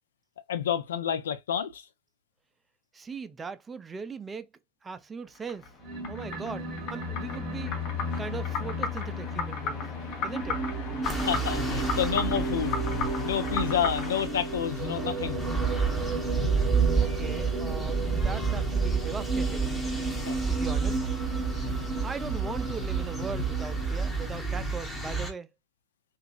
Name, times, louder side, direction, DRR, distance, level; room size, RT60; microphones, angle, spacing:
voice 1, 0.5-1.8 11.1-12.8 13.2-15.4 20.3-20.4, left 9 dB, 65° left, 0.5 m, -29 dB
voice 2, 2.9-4.5 4.8-5.7 6.1-7.8 8.2-9.9 10.2-10.6 17.0-19.7 20.5-21.4 22.0-25.5, right 5 dB, 15° right, 0.3 m, -39 dB
sound 1, 5.4-14.3, left 5 dB, 40° left, 0.7 m, -36 dB
sound 2, 5.8-24.4, right 2 dB, 30° right, 0.9 m, -34 dB
sound 3, 11.0-25.3, right 4 dB, 10° left, 0.8 m, -30 dB
2.8 x 2.3 x 2.4 m
figure-of-eight pair, 90°, 0 cm